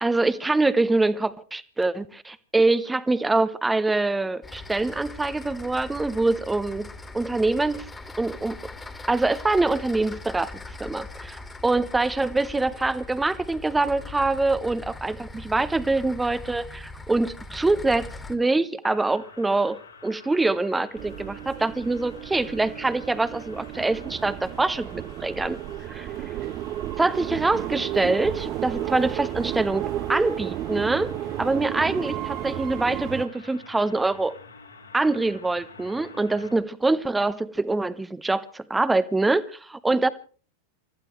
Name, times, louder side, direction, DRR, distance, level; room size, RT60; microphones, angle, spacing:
voice 1, 0.0-6.9 7.1-7.9 8.2-8.6 9.1-25.6 25.9-26.1 27.0-31.1 31.4-34.3 34.9-40.1, right 2 dB, 10° right, 15 dB, 1.2 m, -24 dB
sound 1, 4.4-18.4, left 2 dB, 10° left, 2.4 m, -41 dB
sound 2, 18.8-36.6, left 4 dB, 75° left, 4.9 m, -49 dB
sound 3, 21.0-33.3, right 13 dB, 35° right, 0.7 m, -33 dB
29.0 x 14.5 x 3.3 m, 0.40 s
figure-of-eight pair, 90°, 0 cm